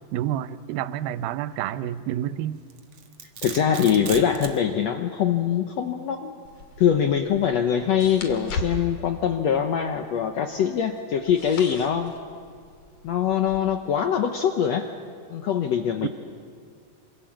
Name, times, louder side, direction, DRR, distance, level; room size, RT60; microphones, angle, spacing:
voice 1, 0.1-2.6 16.0-16.1, right 12 dB, 80° right, 14 dB, 2.5 m, -29 dB
Domestic sounds home sounds, 2.7-4.6, right 7 dB, 55° right, 2.3 m, -36 dB
voice 2, 3.4-6.3 6.8-12.1 13.0-14.9 15.3-16.1, left 8 dB, 75° left, 6 dB, 1.5 m, -23 dB
sound 1, 6.4-13.6, left 3 dB, 55° left, 2.8 m, -39 dB
27.0 x 26.0 x 7.4 m, 2.2 s
omnidirectional pair, 4.3 m